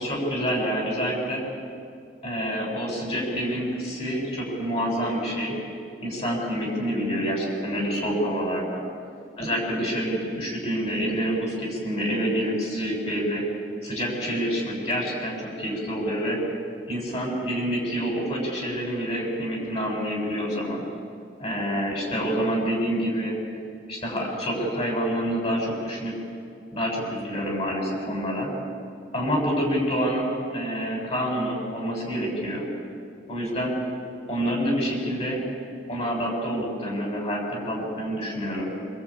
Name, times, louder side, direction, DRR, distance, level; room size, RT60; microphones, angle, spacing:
voice 1, 0.0-1.4 2.2-5.6 6.0-8.8 9.4-13.4 13.8-16.4 16.9-20.8 21.4-23.4 23.9-26.1 26.7-28.5 29.1-32.7 33.3-33.8 34.3-35.4 35.9-38.7, equal, 35° left, 0 dB, 7.5 m, -27 dB
25.5 x 25.0 x 8.8 m, 2.4 s
head